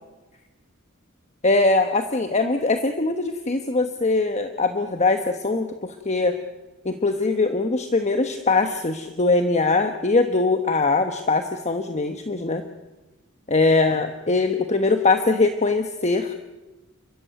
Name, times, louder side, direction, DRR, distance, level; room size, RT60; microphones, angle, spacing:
voice 1, 1.4-6.4 6.8-12.6 13.5-16.3, left 3 dB, 35° left, 7 dB, 1.2 m, -22 dB
29.5 x 14.0 x 9.3 m, 1.1 s
head